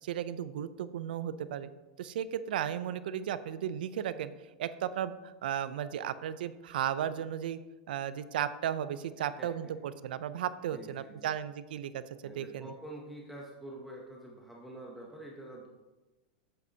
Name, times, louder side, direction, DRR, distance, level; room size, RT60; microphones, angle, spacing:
voice 1, 0.0-1.7 2.0-4.3 4.6-7.6 7.9-12.7, right 10 dB, 80° right, 14 dB, 0.5 m, -35 dB
voice 2, 9.2-9.7 10.7-11.3 12.2-15.7, right 1 dB, ahead, -2 dB, 0.7 m, -47 dB
9.5 x 7.9 x 2.8 m, 1.1 s
supercardioid pair, 165°, 5 cm